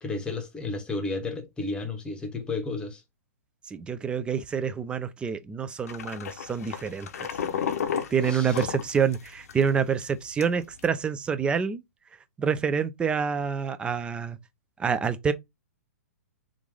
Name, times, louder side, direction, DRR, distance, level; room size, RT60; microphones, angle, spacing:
voice 1, 0.0-3.0 8.2-8.7, left 3 dB, 10° left, 0.9 m, -32 dB
voice 2, 3.7-7.3 8.1-11.8 12.4-14.4 14.8-15.3, right 6 dB, 10° right, 0.3 m, -27 dB
sound 1, 5.9-9.7 10.0-10.1 10.4-10.9, left 8 dB, 65° left, 0.6 m, -32 dB
3.4 x 2.5 x 3.2 m
hypercardioid pair, 120°, 9 cm